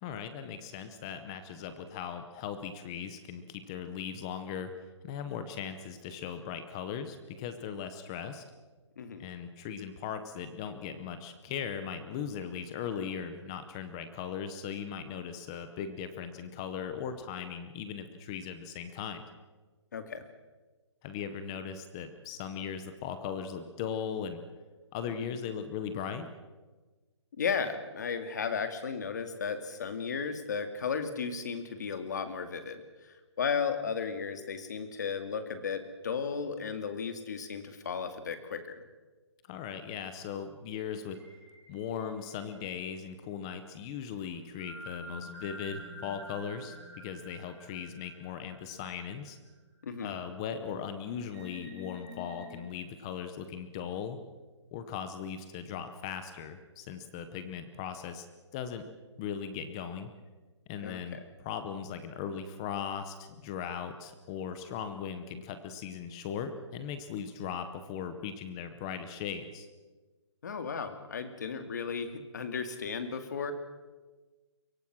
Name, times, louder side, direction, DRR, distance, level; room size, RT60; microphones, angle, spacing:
voice 1, 0.0-4.7 5.0-8.4 9.2-19.2 21.0-24.4 24.9-26.3 39.5-41.2 41.7-49.4 50.0-54.2 54.7-58.3 58.5-58.8 59.2-60.1 60.7-69.7, left 7 dB, 10° left, 10 dB, 0.7 m, -38 dB
voice 2, 19.9-20.3 27.4-32.8 33.4-38.8 49.8-50.1 60.8-61.2 70.4-73.5, left 6 dB, 40° left, 8 dB, 2.3 m, -34 dB
sound 1, 41.1-43.1 44.6-49.4 49.9-50.0 51.3-52.6, equal, 10° right, 6.6 m, -48 dB
25.5 x 23.5 x 6.1 m, 1.3 s
hypercardioid pair, 175°, 15 cm